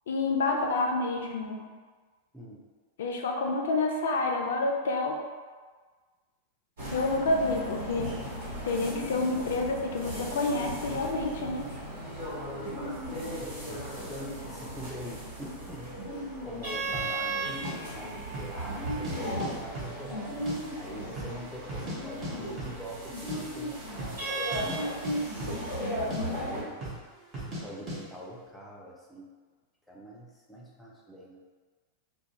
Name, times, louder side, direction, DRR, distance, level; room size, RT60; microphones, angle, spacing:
voice 1, 0.1-1.7 3.0-5.2 6.9-8.1 8.6-11.6, left 3 dB, 60° left, 2 dB, 0.3 m, -28 dB
voice 2, 2.3-2.7 13.1-16.1 16.4-20.5 20.7-24.9 26.1-26.8 27.6-29.3 29.9-31.4, equal, 5° left, -4 dB, 0.5 m, -44 dB
sound 1, 6.8-26.6, right 1 dB, 65° right, 1.3 m, -35 dB
decent beat, 16.9-17.1 17.6-17.7 18.2-18.6 18.9-19.5 19.7-20.6 20.8-20.9 21.2-22.0 22.2-22.3 22.6-22.8 23.1-23.4 23.9-24.2 24.5-24.8 25.0-25.8 26.1-26.2 26.8-27.0 27.3-27.6 27.9-28.0, right 1 dB, 30° right, 0.8 m, -37 dB
2.4 x 2.1 x 2.7 m, 1.4 s
figure-of-eight pair, 90°, 0 cm